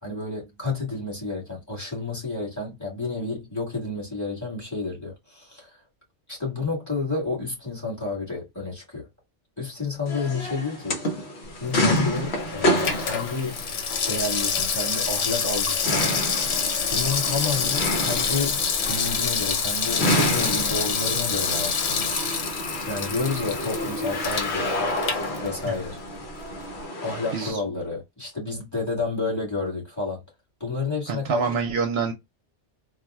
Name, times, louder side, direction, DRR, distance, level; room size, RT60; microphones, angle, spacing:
voice 1, 0.0-5.8 6.3-9.1 9.6-11.0 11.6-13.6 14.1-16.1 16.9-22.2 22.9-24.7 25.4-26.0 27.0-30.2 30.6-31.4, left 3 dB, 15° left, 1.5 m, -30 dB
sound 1, 10.1-27.5, left 1 dB, 65° left, 1.1 m, -29 dB
Water tap faucet / Sink (filling or washing), 11.6-25.9 26.2-26.3, left 6 dB, 90° left, 1.1 m, -27 dB
voice 2, 31.1-32.1, right 5 dB, 65° right, 0.8 m, -26 dB
4.0 x 2.3 x 2.2 m
omnidirectional pair, 1.2 m